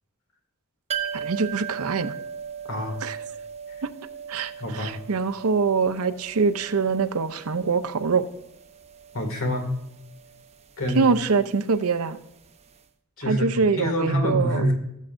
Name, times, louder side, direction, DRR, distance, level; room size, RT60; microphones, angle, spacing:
sound 1, 0.9-12.5 12.8-12.9, right 8 dB, 30° right, 0.7 m, -38 dB
voice 1, 1.1-2.1 3.0-3.2 3.8-3.9 4.3-8.2 10.9-12.2 13.3-14.7, right 4 dB, 70° right, 11 dB, 0.7 m, -24 dB
voice 2, 2.7-3.0 4.6-5.0 9.1-9.7 10.8-11.1 13.2-14.7, equal, 65° left, 3 dB, 2.2 m, -26 dB
16.5 x 7.4 x 2.6 m, 0.83 s
head